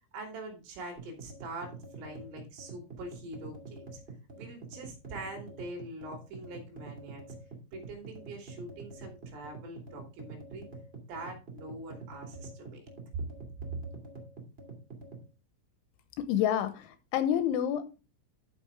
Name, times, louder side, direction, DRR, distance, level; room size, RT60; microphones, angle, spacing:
voice 1, 0.1-4.0 4.4-7.4 7.7-10.7 11.1-12.8, right 2 dB, 75° right, 2 dB, 5.3 m, -44 dB
sound 1, 1.0-15.3, right 3 dB, 40° right, 0.8 m, -46 dB
voice 2, 16.2-18.0, left 10 dB, 80° left, 10 dB, 3.0 m, -29 dB
12.0 x 7.0 x 3.6 m, 0.30 s
omnidirectional pair, 5.9 m